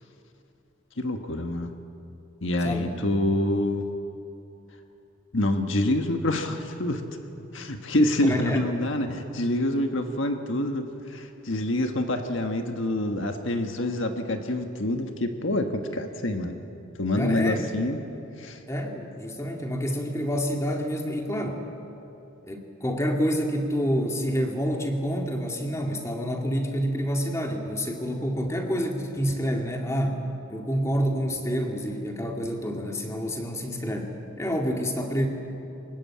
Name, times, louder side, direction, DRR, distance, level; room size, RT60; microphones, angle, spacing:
voice 1, 1.0-1.7 2.4-3.9 5.3-7.0 7.5-16.6 17.0-18.0 18.4-18.6, left 1 dB, 65° left, 5 dB, 1.5 m, -26 dB
voice 2, 8.2-8.6 17.2-17.7 18.7-21.6 22.5-30.2 30.5-35.3, equal, 15° left, 2 dB, 2.3 m, -28 dB
24.5 x 20.5 x 8.7 m, 2.9 s
head